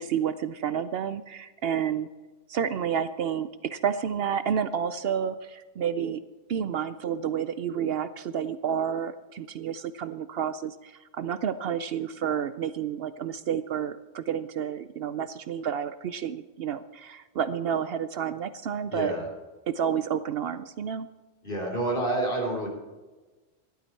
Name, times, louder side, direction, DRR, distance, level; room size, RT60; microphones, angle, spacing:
voice 1, 0.0-2.1 2.5-6.2 6.5-19.1 19.7-21.1, right 8 dB, 65° right, 13 dB, 0.7 m, -30 dB
voice 2, 18.9-19.3 21.4-22.7, right 1 dB, 50° left, 0 dB, 3.8 m, -28 dB
16.0 x 12.0 x 4.5 m, 1.2 s
omnidirectional pair, 1.2 m